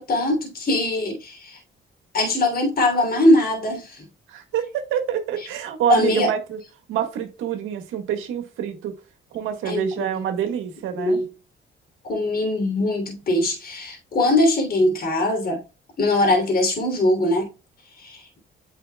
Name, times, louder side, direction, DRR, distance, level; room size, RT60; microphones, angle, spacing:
voice 1, 0.0-1.6 2.1-4.0 5.9-6.3 9.6-10.0 11.0-11.3 12.0-15.6 16.0-17.5 18.0-18.2, left 1 dB, 50° left, 3.1 m, -21 dB
voice 2, 4.3-6.6 6.9-8.9 9.3-11.2, right 9 dB, 90° right, 1.6 m, -26 dB
8.7 x 5.4 x 2.3 m
cardioid pair, 90°, 20 cm